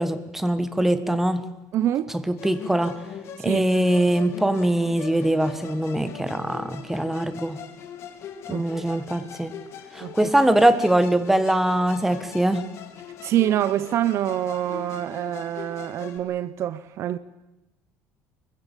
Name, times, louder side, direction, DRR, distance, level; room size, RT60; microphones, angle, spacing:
voice 1, 0.0-1.4 2.3-2.9 3.4-7.6 8.5-9.5 9.9-12.7, right 1 dB, 5° right, 1.6 m, -22 dB
voice 2, 1.7-2.1 3.4-3.6 8.5-8.7 10.0-10.3 13.2-17.2, right 12 dB, 45° right, 0.8 m, -26 dB
Musical instrument, 2.4-16.2, left 8 dB, 45° left, 3.2 m, -41 dB
24.5 x 22.5 x 8.4 m
cardioid pair, 160°, 7 cm